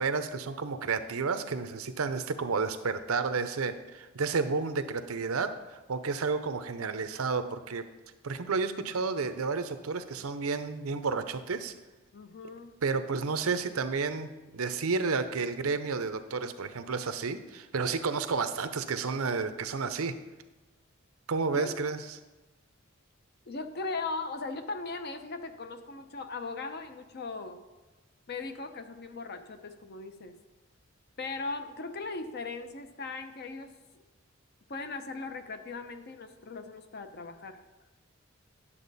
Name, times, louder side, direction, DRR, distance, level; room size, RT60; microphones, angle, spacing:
voice 1, 0.0-7.9 8.2-11.7 12.8-20.1 21.3-22.0, right 4 dB, 85° right, 10 dB, 0.7 m, -31 dB
voice 2, 12.1-12.7 21.5-21.7 23.5-27.6 28.3-30.4 31.2-34.0 34.7-37.6, left 3 dB, 50° left, 8 dB, 0.7 m, -38 dB
10.0 x 7.2 x 4.1 m, 1.1 s
head